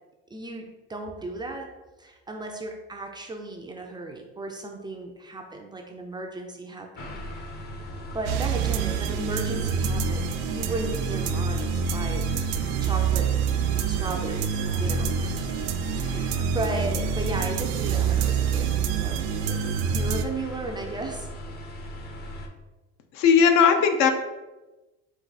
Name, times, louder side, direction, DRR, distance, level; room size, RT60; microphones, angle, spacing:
voice 1, 0.3-1.7 2.0-7.2 8.1-12.3 12.8-13.3 13.9-15.4 15.9-19.6 19.9-21.3, right 2 dB, 15° right, 2 dB, 0.3 m, -35 dB
sound 1, 6.9-22.5, left 1 dB, 30° left, 0.6 m, -38 dB
sound 2, 8.3-20.3, right 7 dB, 85° right, 0.5 m, -26 dB
voice 2, 23.2-24.1, left 6 dB, 70° left, 6 dB, 0.6 m, -18 dB
4.6 x 2.4 x 3.9 m, 1.1 s
cardioid pair, 135°, 31 cm